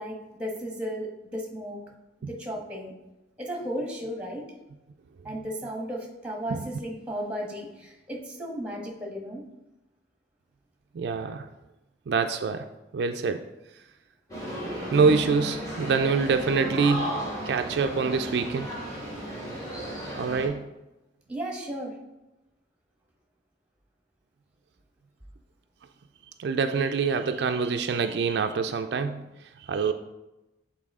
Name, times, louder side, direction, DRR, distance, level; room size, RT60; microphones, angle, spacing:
voice 1, 0.0-1.8 2.3-2.9 3.4-4.5 5.2-9.4 21.3-21.9, equal, 5° right, 0 dB, 1.2 m, -34 dB
voice 2, 10.9-11.5 12.1-12.7 12.9-13.4 14.9-17.1 17.5-18.8 20.2-20.7 26.4-29.2 29.6-29.9, right 5 dB, 65° right, 7 dB, 0.3 m, -25 dB
sound 1, 14.3-20.5, equal, 20° left, 2.0 m, -34 dB
8.2 x 4.1 x 3.6 m, 0.98 s
head